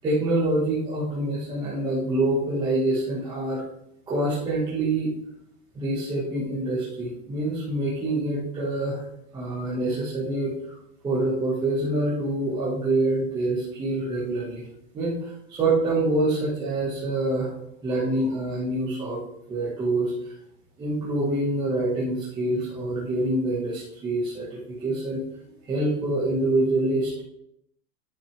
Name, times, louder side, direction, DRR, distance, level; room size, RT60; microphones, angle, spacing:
voice 1, 0.0-3.6 4.1-5.1 5.7-9.0 9.3-10.7 11.0-14.7 14.9-17.5 17.8-19.2 19.5-20.3 20.8-25.2 25.6-27.2, right 2 dB, 10° right, -9 dB, 1.6 m, -26 dB
9.9 x 6.9 x 3.4 m, 0.76 s
supercardioid pair, 175°, 36 cm